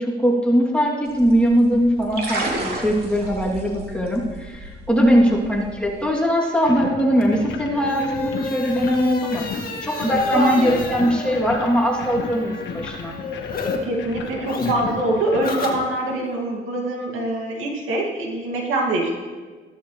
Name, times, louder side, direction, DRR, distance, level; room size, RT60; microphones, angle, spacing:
voice 1, 0.0-9.4 9.8-13.1, equal, 5° left, -4 dB, 2.8 m, -20 dB
sound 1, 1.1-6.1, right 2 dB, 50° right, 3.1 m, -32 dB
voice 2, 5.1-5.4 10.3-10.7 13.8-19.2, right 1 dB, 90° right, 0 dB, 2.3 m, -24 dB
sound 2, 6.6-15.5, left 5 dB, 70° left, 1.4 m, -35 dB
sound 3, 7.2-13.8 14.0-16.3, left 4 dB, 45° left, 2.1 m, -32 dB
14.5 x 13.0 x 3.3 m, 1.4 s
cardioid pair, 90°, 20 cm